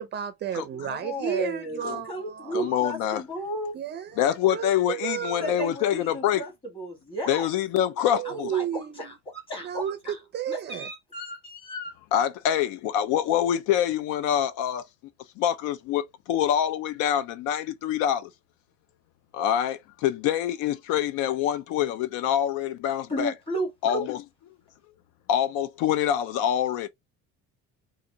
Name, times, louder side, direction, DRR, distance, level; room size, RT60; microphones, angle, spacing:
voice 1, 0.0-2.8 3.7-5.7 8.1-9.1 9.6-10.9, right 9 dB, 35° right, 0.5 m, -33 dB
voice 2, 0.8-1.8 2.1-3.8 5.4-7.5 8.2-10.1 10.5-11.9 23.1-24.1, right 1 dB, 15° left, 1.5 m, -34 dB
voice 3, 2.5-3.2 4.2-6.4 7.3-8.5 12.1-14.8 15.4-18.3 19.3-23.3 23.8-24.2 25.3-26.9, left 10 dB, 70° left, 0.5 m, -25 dB
4.0 x 2.5 x 2.7 m
cardioid pair, 170°, 32 cm